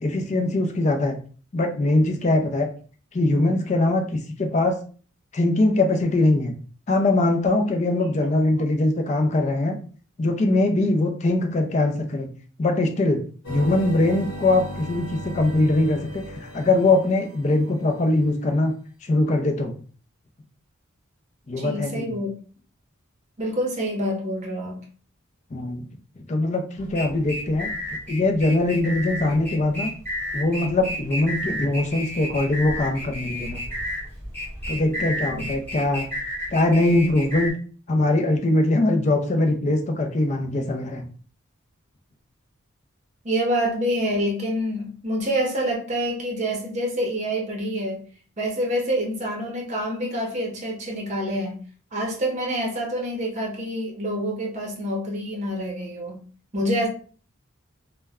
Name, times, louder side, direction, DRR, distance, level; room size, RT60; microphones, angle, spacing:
voice 1, 0.0-1.2 1.5-2.7 3.1-4.0 4.4-4.8 5.3-6.5 6.9-9.8 10.2-12.3 12.6-13.2 13.5-18.7 19.0-19.7 21.5-22.1 25.5-25.8 26.3-27.7 28.1-29.9 30.3-33.6 34.7-36.1 36.5-37.5 37.9-41.0, left 2 dB, 35° left, 4 dB, 0.4 m, -22 dB
sound 1, 13.4-17.7, equal, 65° left, 1.0 m, -36 dB
voice 2, 21.6-22.3 23.4-24.8 35.3-35.5 43.2-48.1 48.4-51.6 51.9-56.2 56.5-56.9, equal, 35° right, -1 dB, 0.7 m, -27 dB
sound 2, 26.8-37.5, equal, 10° left, 0.9 m, -32 dB
2.1 x 2.1 x 3.4 m, 0.41 s
head